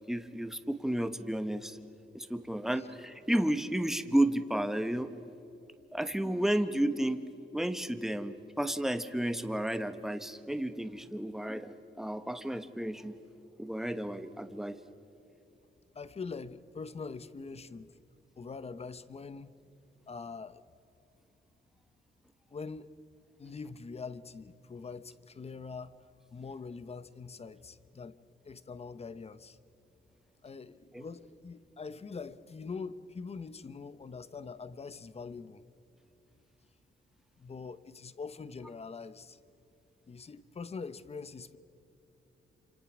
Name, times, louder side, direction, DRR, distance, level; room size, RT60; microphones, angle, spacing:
voice 1, 0.1-1.8 2.1-5.1 5.9-7.2 7.5-13.1 13.6-14.8 30.9-31.0, right 1 dB, ahead, 10 dB, 1.0 m, -32 dB
voice 2, 15.9-18.0 18.4-19.5 20.1-20.6 22.5-22.9 23.4-26.0 26.3-28.2 28.4-29.6 30.4-35.6 37.4-39.4 40.1-41.6, left 4 dB, 30° left, 15 dB, 0.9 m, -43 dB
28.5 x 27.0 x 6.1 m, 2.9 s
wide cardioid pair, 150°, 20 cm